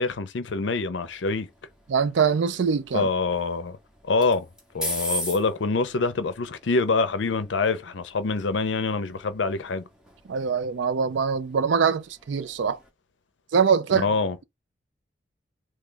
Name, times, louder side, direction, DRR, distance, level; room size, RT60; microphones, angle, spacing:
voice 1, 0.0-1.5 2.9-3.8 4.0-4.5 4.7-9.8 14.0-14.4, left 3 dB, 75° left, 0.6 m, -25 dB
sound 1, 1.0-12.9, equal, 5° right, 0.8 m, -40 dB
voice 2, 1.9-3.1 10.3-12.8 13.5-14.1, right 6 dB, 70° right, 0.4 m, -23 dB
3.1 x 2.3 x 3.8 m
head